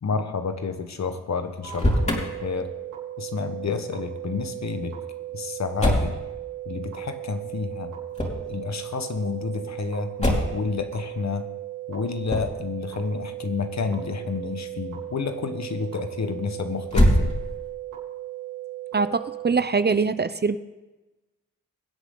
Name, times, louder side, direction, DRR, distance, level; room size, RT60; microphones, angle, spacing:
voice 1, 0.0-2.7 3.2-5.0 5.3-6.1 6.7-7.9 8.5-11.5 11.9-17.3, left 5 dB, 55° left, 8 dB, 1.4 m, -30 dB
Motor vehicle (road), 1.5-2.2 5.8-6.2 8.1-8.5 10.2-10.6 12.2-12.6 16.8-17.7, equal, 20° left, 3.7 m, -22 dB
sound 1, 1.6-19.7, right 14 dB, 75° right, 3.5 m, -36 dB
voice 2, 18.9-20.6, right 4 dB, 30° right, 13 dB, 0.7 m, -23 dB
22.0 x 8.1 x 3.9 m, 1.1 s
supercardioid pair, 45°, 32 cm